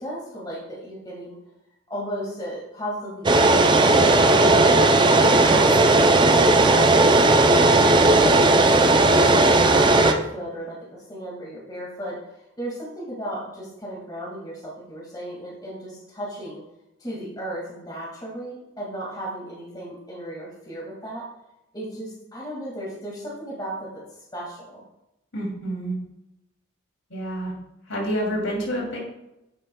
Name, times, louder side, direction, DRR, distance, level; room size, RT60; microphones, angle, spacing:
voice 1, 0.0-1.4 1.9-5.7 6.2-16.6 17.0-21.2 21.7-24.8, equal, 20° left, -4 dB, 2.1 m, -35 dB
sound 1, 3.2-10.1, right 2 dB, 25° right, 0.5 m, -16 dB
voice 2, 25.3-25.9 27.1-27.5 27.9-29.0, equal, 80° left, -2 dB, 2.9 m, -28 dB
9.3 x 7.6 x 2.3 m, 0.90 s
head